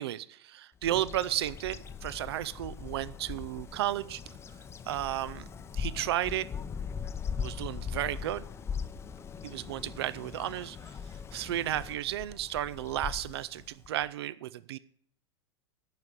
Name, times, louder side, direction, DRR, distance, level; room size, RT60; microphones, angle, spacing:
voice 1, 0.0-4.2 4.9-5.4 5.7-6.5 7.4-8.4 9.4-11.0 11.3-14.8, right 13 dB, 70° right, 18 dB, 0.5 m, -33 dB
Bird vocalization bird call bird song, 0.8-14.1, left 6 dB, 20° left, 0.6 m, -40 dB
11.0 x 4.9 x 8.1 m, 0.64 s
hypercardioid pair, 105°, 14 cm